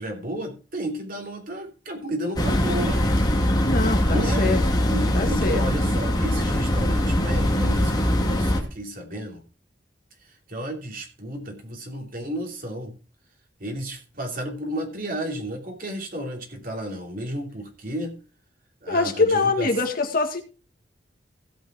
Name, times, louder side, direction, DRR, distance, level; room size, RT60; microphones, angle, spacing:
voice 1, 0.0-3.0 4.1-9.4 10.5-12.9 13.6-18.1 18.8-19.7, right 1 dB, 50° right, 2 dB, 3.0 m, -33 dB
sound 1, 2.4-8.6, left 1 dB, 25° left, 2.4 m, -22 dB
voice 2, 3.6-5.6 18.9-20.4, left 3 dB, 50° left, 5 dB, 1.8 m, -24 dB
16.0 x 5.6 x 4.9 m, 0.35 s
head